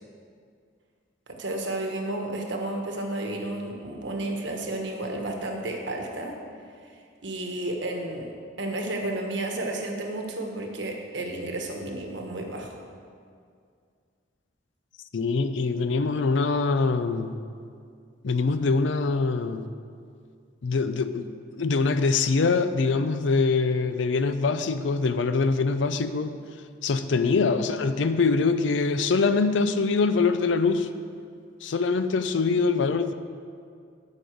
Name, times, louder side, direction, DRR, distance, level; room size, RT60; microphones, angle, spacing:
voice 1, 1.4-6.3 7.2-8.3 8.6-12.7 27.2-27.3, right 1 dB, 70° right, 2 dB, 1.2 m, -32 dB
voice 2, 15.1-17.4 18.2-19.7 20.6-26.4 26.8-30.9 31.6-33.1, left 4 dB, 75° left, 11 dB, 0.5 m, -24 dB
8.0 x 5.4 x 7.7 m, 2.2 s
head